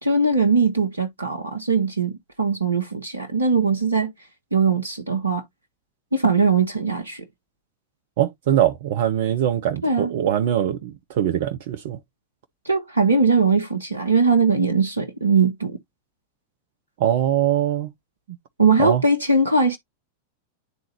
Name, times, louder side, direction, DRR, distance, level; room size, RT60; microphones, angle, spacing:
voice 1, 0.0-4.1 4.5-5.4 6.1-7.2 9.8-10.1 12.6-15.8 18.6-19.8, right 4 dB, 80° right, 1.0 m, -20 dB
voice 2, 8.2-12.0 17.0-17.9 18.8-19.0, right 11 dB, 55° right, 0.7 m, -22 dB
10.5 x 3.8 x 2.8 m
figure-of-eight pair, 90°, 0 cm